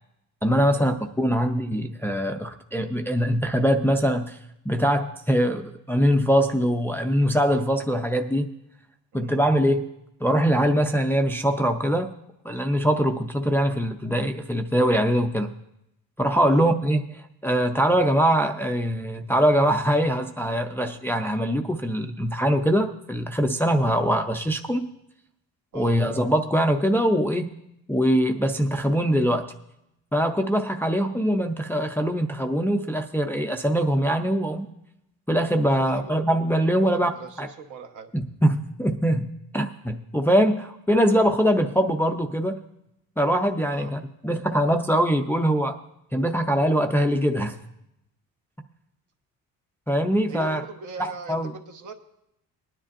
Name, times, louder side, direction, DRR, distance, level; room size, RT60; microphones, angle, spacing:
voice 1, 0.4-4.4 4.7-8.5 9.1-9.9 10.2-12.1 12.4-15.5 16.2-17.0 17.4-24.9 25.7-27.5 27.9-29.5 30.1-34.7 35.3-37.1 37.4-37.5 38.1-39.3 39.5-42.6 43.2-45.8 46.1-47.6 49.9-50.6 51.3-51.5, equal, 5° left, 5 dB, 0.4 m, -22 dB
voice 2, 16.4-16.7 25.7-26.0 35.7-36.1 36.8-38.1 43.7-43.9 50.3-51.9, right 4 dB, 60° right, 4 dB, 1.2 m, -39 dB
20.0 x 10.0 x 2.5 m, 0.82 s
cardioid pair, 135°, 35 cm